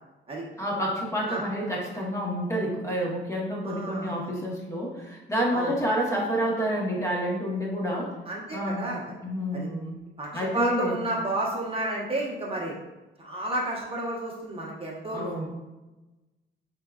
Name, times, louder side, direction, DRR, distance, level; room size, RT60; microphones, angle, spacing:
voice 1, 0.6-8.1 8.5-8.9 9.2-9.9 10.3-11.0 15.1-15.5, equal, 15° left, -3 dB, 1.0 m, -29 dB
voice 2, 3.6-4.3 5.5-5.7 8.3-9.1 9.5-9.7 10.2-12.7 13.2-15.5, right 1 dB, 30° right, -3 dB, 1.0 m, -31 dB
4.4 x 3.6 x 2.3 m, 1.1 s
cardioid pair, 90°, 20 cm